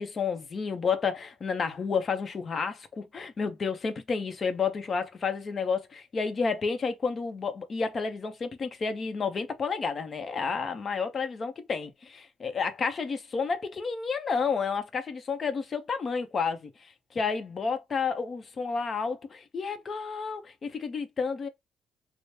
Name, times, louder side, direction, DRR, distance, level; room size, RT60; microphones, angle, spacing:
voice 1, 0.0-11.9 12.4-21.5, left 5 dB, 45° left, 0.7 m, -30 dB
3.1 x 2.1 x 4.1 m
cardioid pair, 90°, 0 cm